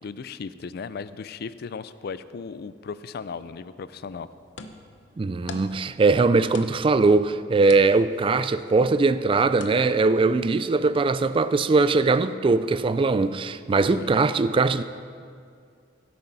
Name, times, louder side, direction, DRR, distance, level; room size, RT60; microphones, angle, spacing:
voice 1, 0.0-4.3 13.9-14.1, left 5 dB, 55° left, 0.4 m, -36 dB
sound 1, 4.1-9.7, left 4 dB, 75° left, 0.8 m, -46 dB
voice 2, 5.2-14.8, right 3 dB, 30° right, 0.3 m, -21 dB
16.0 x 8.7 x 4.0 m
head